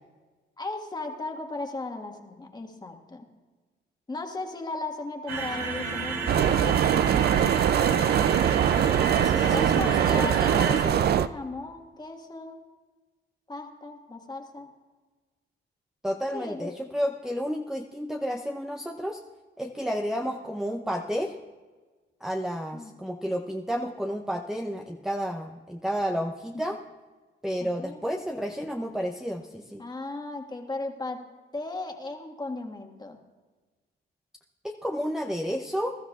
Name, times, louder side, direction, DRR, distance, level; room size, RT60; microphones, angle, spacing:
voice 1, 0.6-3.3 4.1-7.4 9.5-12.6 13.5-14.7 16.3-16.7 22.7-22.9 26.5-26.7 27.6-28.0 29.8-31.2 31.5-33.2, left 2 dB, 20° left, 3 dB, 1.7 m, -36 dB
sound 1, 5.3-10.8, right 4 dB, 80° right, 3.0 m, -31 dB
sound 2, 6.3-11.3, right 9 dB, 55° right, 0.4 m, -22 dB
voice 2, 9.2-10.9 16.0-19.2 19.6-21.3 22.2-26.8 27.4-29.8 34.6-36.0, equal, 5° right, 1 dB, 0.7 m, -31 dB
21.5 x 12.5 x 2.4 m, 1.3 s
cardioid pair, 90°, 20 cm